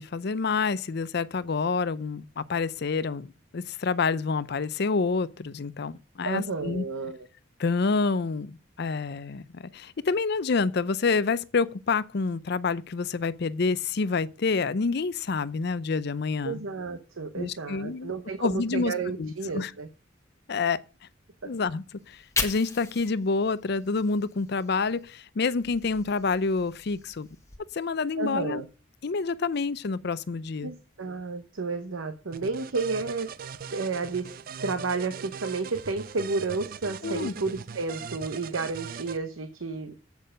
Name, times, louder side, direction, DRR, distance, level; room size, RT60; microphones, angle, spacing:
voice 1, 0.0-6.8 7.6-16.6 17.3-18.1 18.4-18.9 19.2-19.7 20.5-20.8 21.4-27.3 27.7-28.6 29.0-30.7 37.0-37.3, left 4 dB, 55° left, 0.5 m, -28 dB
voice 2, 6.2-7.3 16.4-19.9 21.4-21.5 28.2-28.7 30.6-33.3 33.7-34.3 34.6-40.0, right 4 dB, 90° right, 0.9 m, -31 dB
Fire, 22.0-25.1 25.5-27.6, left 4 dB, 15° left, 1.2 m, -38 dB
sound 1, 32.3-39.2, right 6 dB, 45° right, 0.4 m, -40 dB
8.2 x 6.6 x 5.1 m
head